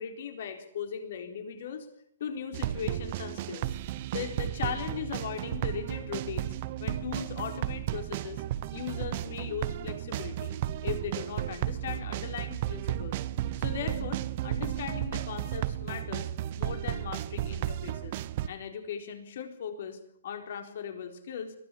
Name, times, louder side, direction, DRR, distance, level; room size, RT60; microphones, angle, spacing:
voice 1, 0.0-1.9 2.2-3.7 4.1-6.5 6.8-8.4 8.7-10.6 10.8-13.2 13.6-16.3 16.6-18.2 18.5-21.5, left 7 dB, 60° left, 6 dB, 4.1 m, -38 dB
sound 1, 2.5-18.5, right 13 dB, 40° right, 1.0 m, -33 dB
22.0 x 15.0 x 8.6 m, 0.70 s
hypercardioid pair, 155°, 0 cm